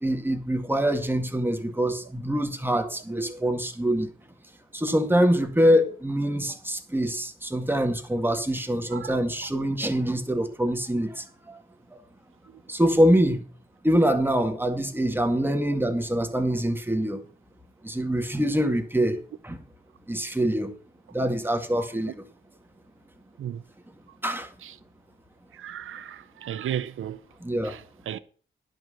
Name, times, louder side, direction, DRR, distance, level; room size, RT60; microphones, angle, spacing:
voice 1, 0.0-4.1 4.7-11.6 11.9-12.0 12.7-13.4 13.8-17.2 17.8-19.6 20.1-20.7 21.1-22.2 24.2-24.5 27.4-27.8, equal, 10° right, 2.0 m, -24 dB
voice 2, 25.5-27.2 27.6-28.2, right 10 dB, 90° right, 0.6 m, -35 dB
10.5 x 6.2 x 7.6 m
cardioid pair, 65°, 20 cm